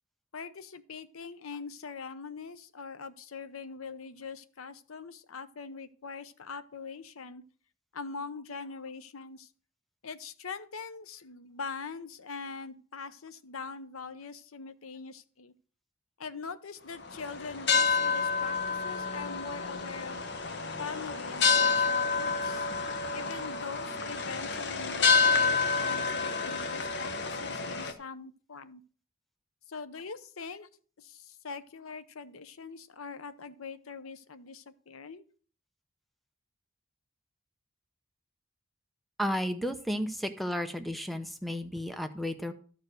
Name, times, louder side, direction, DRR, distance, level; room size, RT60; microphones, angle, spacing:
voice 1, 0.3-7.4 7.9-9.5 10.0-15.5 16.2-20.2 20.8-22.7 23.1-28.8 29.7-30.7 31.0-35.2, left 5 dB, 85° left, 13 dB, 0.8 m, -42 dB
sound 1, 17.0-27.9, left 4 dB, 55° left, 1.0 m, -29 dB
voice 2, 39.2-42.5, equal, ahead, 8 dB, 0.7 m, -33 dB
12.5 x 4.8 x 6.3 m, 0.42 s
head